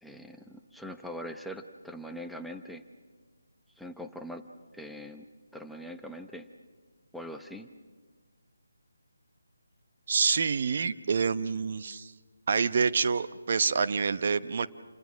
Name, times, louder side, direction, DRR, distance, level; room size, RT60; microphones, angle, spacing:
voice 1, 0.0-2.8 3.8-4.5 4.7-5.2 5.5-6.5 7.1-7.7, equal, ahead, 4 dB, 0.8 m, -42 dB
voice 2, 10.1-12.1 12.5-14.7, right 5 dB, 45° right, 11 dB, 1.0 m, -27 dB
29.0 x 28.5 x 6.3 m, 1.5 s
figure-of-eight pair, 150°, 0 cm